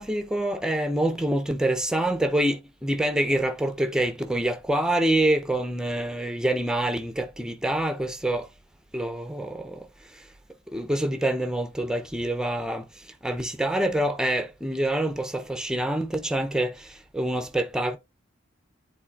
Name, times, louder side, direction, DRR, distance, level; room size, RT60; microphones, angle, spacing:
voice 1, 0.0-8.5 8.9-9.8 10.7-12.8 13.2-16.7 17.1-18.0, right 1 dB, 5° right, 0.6 m, -26 dB
10.0 x 4.0 x 2.4 m
head